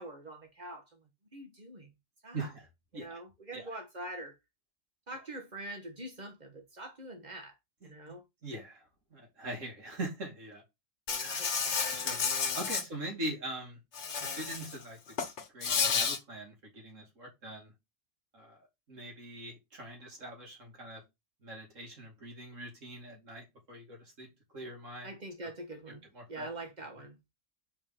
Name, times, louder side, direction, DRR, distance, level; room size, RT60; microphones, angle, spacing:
voice 1, 0.0-1.9 2.2-2.5 2.9-4.4 5.1-7.5 7.8-8.2 11.4-12.0 12.3-12.6 25.0-27.2, right 1 dB, 35° right, 1.3 m, -45 dB
voice 2, 8.4-8.8 9.1-10.6 11.2-11.5 11.9-12.2 12.5-13.8 14.2-15.0 15.5-17.7 18.3-18.6 18.9-21.0 21.4-24.3 24.5-25.1 26.1-26.5, right 1 dB, 85° right, 2.9 m, -42 dB
Insect, 11.1-12.8 13.9-14.8 15.1-16.2, left 6 dB, 65° left, 1.4 m, -31 dB
5.0 x 4.7 x 5.6 m
omnidirectional pair, 1.3 m